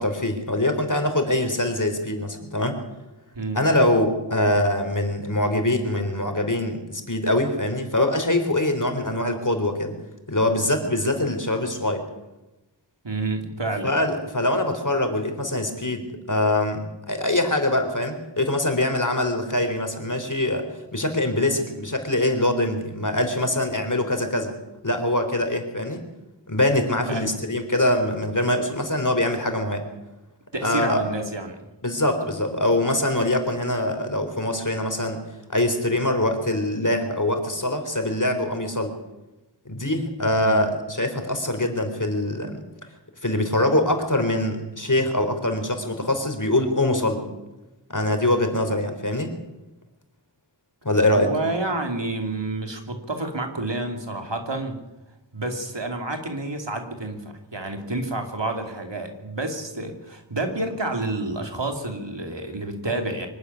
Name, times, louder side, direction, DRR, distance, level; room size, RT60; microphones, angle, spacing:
voice 1, 0.0-2.8 3.5-9.9 10.3-12.0 13.8-24.5 24.8-26.0 26.5-29.8 30.6-31.0 31.8-35.2 35.5-38.9 39.7-42.6 43.2-47.2 47.9-49.3 50.8-51.3, left 1 dB, 45° left, 6 dB, 3.9 m, -23 dB
voice 2, 13.0-13.9 27.1-27.4 30.5-31.6 40.2-40.6 51.1-54.8 55.3-63.3, right 2 dB, 75° right, 4 dB, 3.0 m, -29 dB
24.0 x 12.0 x 9.9 m, 1.0 s
wide cardioid pair, 40°, 44 cm